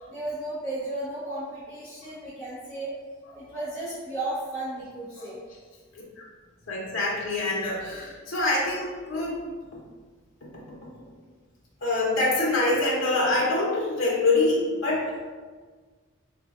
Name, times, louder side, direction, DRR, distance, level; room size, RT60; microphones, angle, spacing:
voice 1, 0.1-2.9 3.3-5.4, right 1 dB, 10° left, -13 dB, 0.9 m, -34 dB
voice 2, 6.7-9.4 11.8-15.1, left 2 dB, 80° left, -4 dB, 0.8 m, -25 dB
3.1 x 2.4 x 3.6 m, 1.5 s
head